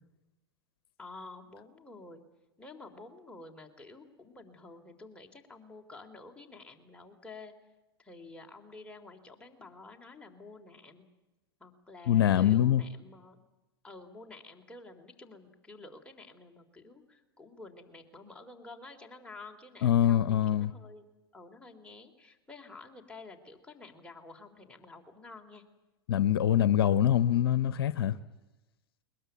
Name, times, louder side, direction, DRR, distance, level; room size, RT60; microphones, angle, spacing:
voice 1, 1.0-2.2 2.6-7.5 8.0-11.1 11.6-13.4 13.8-21.1 21.3-25.6, left 3 dB, 10° left, 3.6 m, -50 dB
voice 2, 12.1-12.8 19.8-20.7 26.1-28.2, left 10 dB, 70° left, 0.8 m, -24 dB
21.5 x 21.0 x 9.4 m
hypercardioid pair, 95°, 13 cm